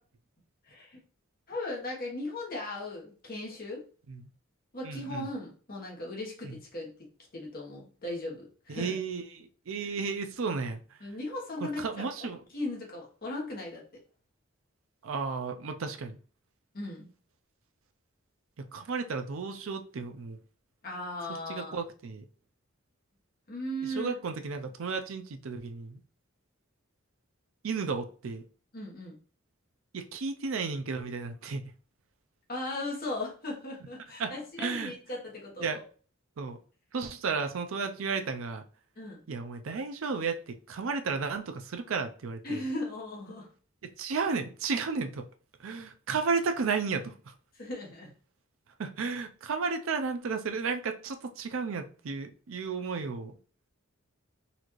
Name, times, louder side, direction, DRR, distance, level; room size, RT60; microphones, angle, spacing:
voice 1, 0.6-1.0 1.5-3.9 4.7-7.1 7.3-9.0 11.0-12.3 12.5-13.8 16.7-17.1 20.8-21.8 23.5-24.2 28.7-29.2 32.5-35.8 39.0-39.2 42.4-43.5 47.6-48.1, left 1 dB, 45° left, 1.2 m, -37 dB
voice 2, 4.8-5.3 6.4-6.6 8.7-11.0 11.6-12.4 15.0-16.2 18.6-20.4 21.5-22.2 23.8-26.0 27.6-28.4 29.9-31.7 34.2-34.3 34.6-34.9 35.6-35.8 36.4-36.6 36.9-38.6 39.3-42.6 43.8-45.3 45.6-47.3 48.8-53.4, right 4 dB, 75° right, 0.5 m, -33 dB
4.1 x 2.5 x 3.0 m
head